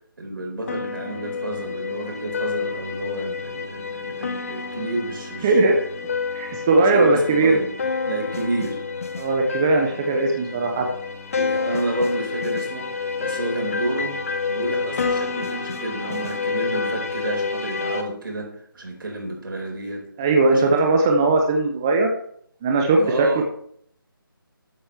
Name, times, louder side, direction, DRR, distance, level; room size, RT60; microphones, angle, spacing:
voice 1, 0.2-5.8 6.5-7.7 8.1-8.9 11.3-14.2 14.5-20.1 20.4-20.8 22.9-23.4, right 2 dB, 65° right, 1 dB, 4.1 m, -30 dB
sound 1, 0.7-18.0, left 5 dB, 40° left, 0.9 m, -29 dB
voice 2, 5.4-5.8 6.3-7.6 9.2-10.8 20.2-22.1 22.6-23.0, right 3 dB, 10° right, 2 dB, 0.4 m, -19 dB
12.5 x 8.1 x 3.2 m, 0.65 s
figure-of-eight pair, 165°, 12 cm